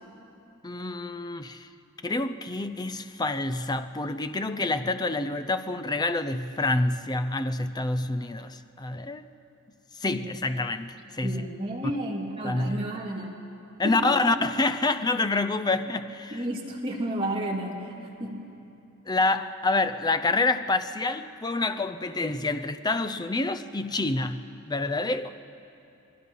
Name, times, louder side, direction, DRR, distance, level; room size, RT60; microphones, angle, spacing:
voice 1, 0.6-1.7 2.0-9.3 10.0-11.4 12.4-12.8 13.8-16.4 19.1-25.4, left 2 dB, 20° left, 9 dB, 0.6 m, -27 dB
voice 2, 11.2-13.3 13.8-14.3 16.3-17.9 18.2-18.5, right 1 dB, 25° right, -2 dB, 2.7 m, -32 dB
28.5 x 20.0 x 5.6 m, 2.8 s
head